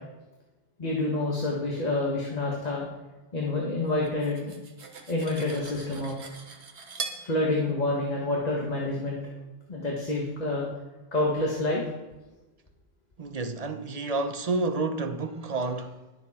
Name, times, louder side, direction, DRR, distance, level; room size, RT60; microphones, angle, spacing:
voice 1, 0.8-2.8 3.3-4.5 5.1-6.1 7.2-9.2 9.7-10.7 11.1-11.8, left 2 dB, 35° left, 1.6 m, -28 dB
Cutlery silverware, 4.0-7.2, right 4 dB, 75° right, 1.5 m, -40 dB
voice 2, 13.2-16.0, right 3 dB, 40° right, 0.8 m, -30 dB
21.0 x 7.2 x 4.3 m
omnidirectional pair, 1.2 m